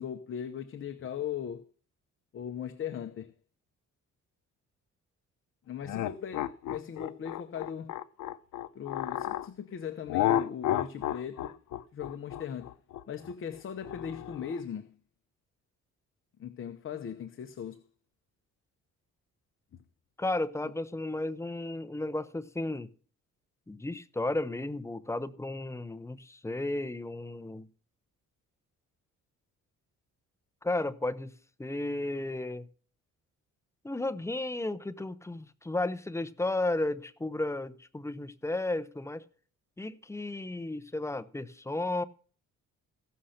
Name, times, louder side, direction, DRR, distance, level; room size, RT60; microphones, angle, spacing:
voice 1, 0.0-1.7 2.3-3.3 5.7-8.0 8.7-11.6 11.9-12.7 13.1-14.9 16.4-17.8, left 8 dB, 40° left, 0.9 m, -38 dB
sound 1, 5.8-9.5 10.1-14.6, left 12 dB, 70° left, 0.7 m, -32 dB
voice 2, 20.2-22.9 23.7-27.7 30.6-31.3 31.6-32.7 33.8-39.2 39.8-42.0, left 2 dB, 10° left, 0.8 m, -33 dB
16.0 x 6.5 x 5.7 m
cardioid pair, 135°, 31 cm